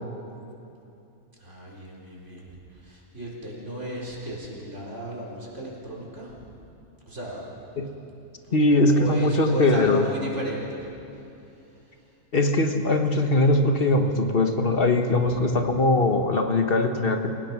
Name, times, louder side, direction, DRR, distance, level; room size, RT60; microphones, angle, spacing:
voice 1, 1.4-6.6 7.1-7.5 8.4-12.2 15.1-15.8, equal, 65° right, -4 dB, 4.6 m, -36 dB
voice 2, 8.5-10.0 12.3-17.3, left 2 dB, 45° left, 6 dB, 1.5 m, -21 dB
29.0 x 17.0 x 6.1 m, 2.8 s
omnidirectional pair, 1.3 m